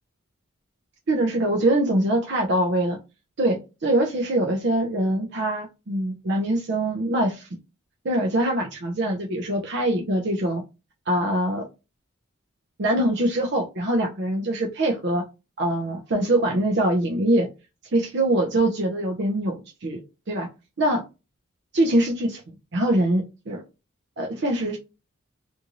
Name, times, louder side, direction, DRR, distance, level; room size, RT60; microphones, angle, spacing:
voice 1, 1.1-3.0 3.4-7.5 8.0-10.6 11.1-11.7 12.8-15.2 15.6-17.5 17.9-20.0 20.3-20.5 20.8-21.0 21.7-22.4 22.7-23.6 24.2-24.8, right 1 dB, 55° right, 1 dB, 0.5 m, -23 dB
2.6 x 2.5 x 2.9 m, 0.27 s
head